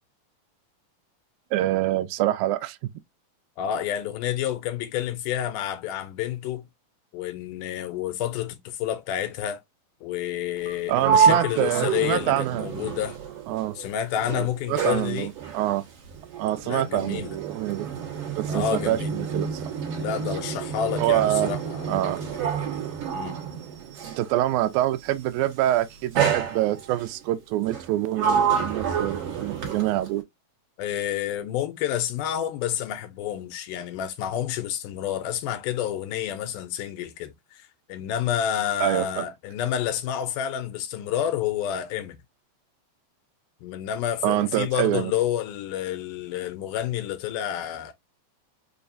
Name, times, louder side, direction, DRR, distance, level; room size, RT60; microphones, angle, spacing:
voice 1, 1.5-2.8 10.9-12.7 13.5-13.8 14.4-15.8 16.4-17.9 18.4-19.7 21.0-21.5 21.9-22.2 24.0-30.2 38.8-39.2 44.2-45.1, right 14 dB, 85° right, 1.7 m, -26 dB
voice 2, 3.6-6.6 7.1-9.6 10.0-13.2 13.8-15.3 16.6-17.4 18.5-19.1 19.9-22.8 23.1-23.4 30.8-42.2 43.6-47.9, left 10 dB, 80° left, 2.0 m, -29 dB
Sliding door, 10.6-13.9 14.2-24.3 25.2-25.5 26.1-27.1 27.7-30.2, right 7 dB, 55° right, 1.8 m, -28 dB
5.3 x 2.3 x 2.5 m
omnidirectional pair, 3.9 m